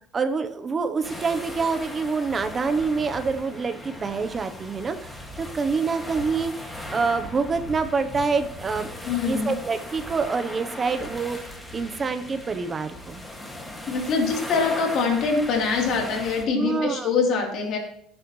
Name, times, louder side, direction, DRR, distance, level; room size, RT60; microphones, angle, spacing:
voice 1, 0.1-8.9 9.2-11.4 11.7-13.2 16.5-17.1, right 4 dB, 25° right, 9 dB, 0.9 m, -26 dB
sound 1, 1.0-16.5, left 1 dB, 5° left, 2.1 m, -38 dB
voice 2, 9.0-9.6 13.9-17.8, left 5 dB, 50° left, 0 dB, 3.5 m, -24 dB
17.5 x 9.7 x 3.2 m, 0.70 s
cardioid pair, 150°, 0 cm